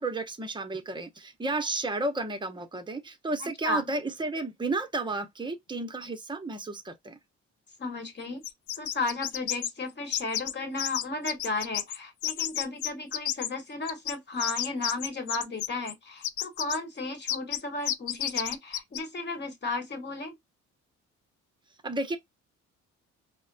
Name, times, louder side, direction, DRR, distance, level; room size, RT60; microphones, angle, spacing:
voice 1, 0.0-7.2 21.8-22.2, right 2 dB, 15° right, 0.7 m, -32 dB
voice 2, 3.4-3.9 7.8-8.4 8.7-20.3, left 3 dB, 35° left, 1.2 m, -34 dB
sound 1, 8.4-9.7 10.1-10.5 10.8-12.0 12.2-13.5 13.9-15.9 16.2-16.8 17.3-17.6 17.8-19.0, left 11 dB, 75° left, 0.5 m, -31 dB
4.9 x 2.1 x 2.6 m
cardioid pair, 90°, 30 cm